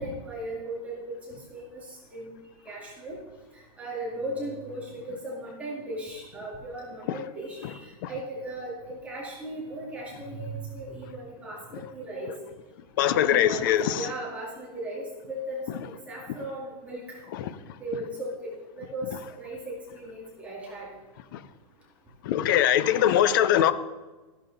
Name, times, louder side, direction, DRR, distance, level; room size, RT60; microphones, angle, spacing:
voice 1, 0.0-2.3 2.7-3.2 3.5-12.3 13.0-17.2 17.8-18.5 18.8-20.9, right 1 dB, 5° right, 2.1 m, -37 dB
voice 2, 13.0-14.1 17.4-17.5 21.3-21.4 22.2-23.7, left 11 dB, 35° left, 0.5 m, -22 dB
14.0 x 11.0 x 3.9 m
supercardioid pair, 175°, 20 cm